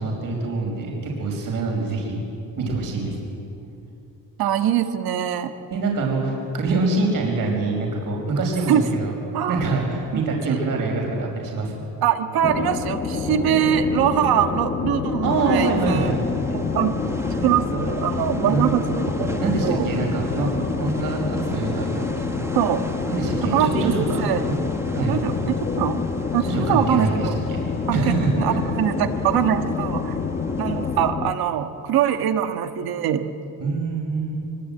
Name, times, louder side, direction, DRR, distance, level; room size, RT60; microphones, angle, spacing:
voice 1, 0.0-2.2 2.6-3.2 5.7-9.1 9.5-11.8 15.2-16.2 18.5-18.7 19.4-20.5 20.8-22.2 23.1-24.6 24.9-25.2 26.5-27.6 27.9-28.6 33.6-34.3, right 3 dB, 65° right, 0 dB, 5.4 m, -25 dB
voice 2, 4.4-5.5 8.7-8.8 9.3-9.6 10.1-10.2 10.5-10.6 12.0-16.1 16.5-17.0 17.4-19.9 22.5-22.8 23.4-23.9 24.2-24.4 25.1-26.0 26.3-27.3 27.9-30.2 30.6-33.3, right 10 dB, 85° right, 8 dB, 1.6 m, -23 dB
sound 1, 12.4-31.3, left 5 dB, 25° left, 1.1 m, -27 dB
sound 2, 15.3-31.1, right 1 dB, 5° right, 1.4 m, -35 dB
24.0 x 23.5 x 8.8 m, 2.8 s
cardioid pair, 145°, 36 cm